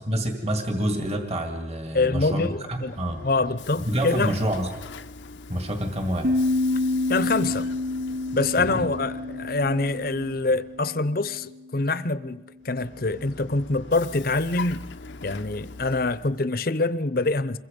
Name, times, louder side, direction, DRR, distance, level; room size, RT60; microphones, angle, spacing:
voice 1, 0.0-3.2 3.8-4.7 5.5-6.3 8.6-8.9, equal, 35° right, 4 dB, 2.1 m, -28 dB
voice 2, 1.9-3.0 3.2-4.3 7.1-7.7 8.3-14.8 15.2-17.6, left 3 dB, 55° left, 15 dB, 0.8 m, -25 dB
Vehicle, 2.4-10.9 12.6-16.5, left 4 dB, 85° left, 0.9 m, -42 dB
sound 1, 6.2-11.4, left 2 dB, 60° right, 0.9 m, -28 dB
27.5 x 22.5 x 5.3 m, 1.1 s
head